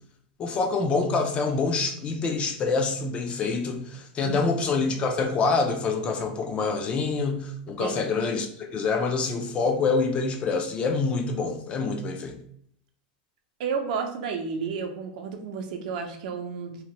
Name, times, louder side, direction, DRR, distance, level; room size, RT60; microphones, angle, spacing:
voice 1, 0.4-12.4, left 4 dB, 25° left, 5 dB, 0.3 m, -26 dB
voice 2, 13.6-16.8, right 5 dB, 70° right, 4 dB, 0.5 m, -31 dB
2.9 x 2.1 x 2.8 m, 0.66 s
supercardioid pair, 140°, 5 cm